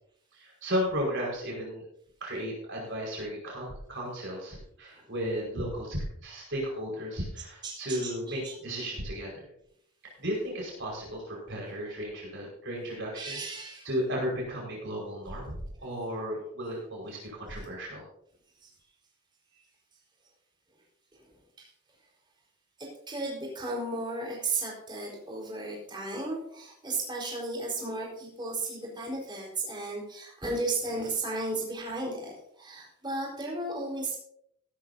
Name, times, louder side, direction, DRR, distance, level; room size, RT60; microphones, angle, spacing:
voice 1, 0.3-1.9 2.2-9.5 10.0-13.4 13.8-18.0, equal, 55° right, -3 dB, 5.2 m, -34 dB
voice 2, 7.6-8.5 13.1-13.9 18.6-18.7 21.6-21.7 22.8-34.2, right 2 dB, 20° right, -3 dB, 4.4 m, -34 dB
16.0 x 13.0 x 2.8 m, 0.71 s
head